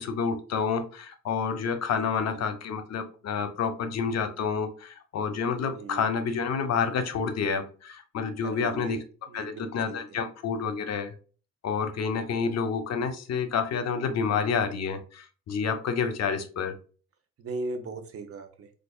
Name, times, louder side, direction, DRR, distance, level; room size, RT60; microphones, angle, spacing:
voice 1, 0.0-9.0 9.3-11.1 11.6-16.7, left 6 dB, 60° left, 9 dB, 0.6 m, -29 dB
voice 2, 5.7-6.1 8.4-9.0 9.3-10.2 12.3-12.5 17.4-18.7, right 3 dB, 50° right, 6 dB, 0.7 m, -38 dB
4.6 x 2.4 x 2.3 m, 0.37 s
cardioid pair, 90°, 30 cm